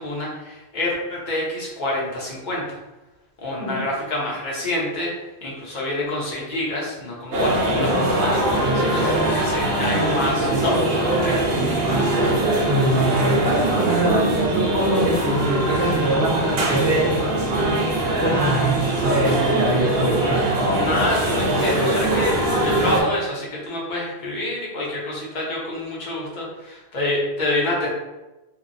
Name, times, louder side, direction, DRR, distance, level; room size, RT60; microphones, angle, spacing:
voice 1, 0.0-2.8 3.4-5.1 5.4-11.6 19.7-19.8 20.7-27.9, left 1 dB, 50° left, -4 dB, 0.8 m, -27 dB
sound 1, 7.3-23.0, right 1 dB, 70° right, 0.8 m, -21 dB
voice 2, 11.8-17.2 18.2-20.5, right 1 dB, 10° left, -8 dB, 0.5 m, -24 dB
2.7 x 2.1 x 2.5 m, 1.1 s
omnidirectional pair, 1.1 m